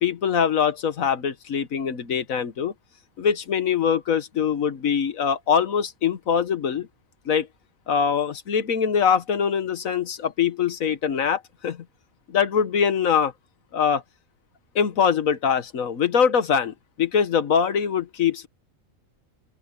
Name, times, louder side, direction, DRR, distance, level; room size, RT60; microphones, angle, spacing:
voice 1, 0.0-2.7 3.2-6.9 7.3-7.5 7.9-11.8 12.3-13.3 13.7-14.0 14.8-18.5, left 7 dB, 90° left, 1.6 m, -23 dB
open air
omnidirectional pair, 1.4 m